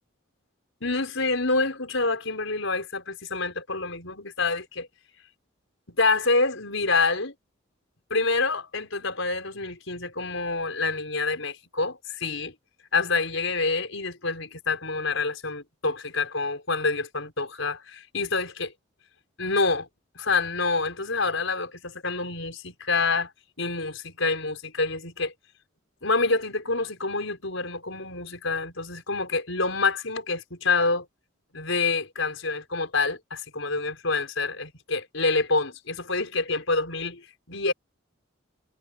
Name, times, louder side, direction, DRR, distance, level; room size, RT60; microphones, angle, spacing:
voice 1, 0.8-4.9 6.0-7.3 8.1-12.5 12.9-18.7 19.4-19.9 20.2-23.3 23.6-25.3 26.0-31.1 31.5-37.7, left 3 dB, 75° left, 5.2 m, -27 dB
head